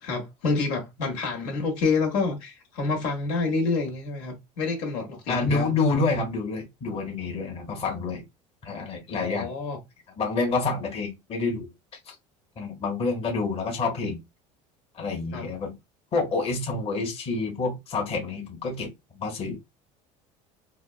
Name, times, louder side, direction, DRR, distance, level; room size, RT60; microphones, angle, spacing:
voice 1, 0.0-5.7 9.1-9.8 15.3-15.5, left 4 dB, 75° left, 1.2 m, -28 dB
voice 2, 5.3-8.2 8.6-9.5 10.2-11.7 12.1-12.2 12.6-14.2 14.9-15.7 16.1-19.6, left 3 dB, 35° left, 1.1 m, -28 dB
3.4 x 2.2 x 2.4 m
supercardioid pair, 100°, 16 cm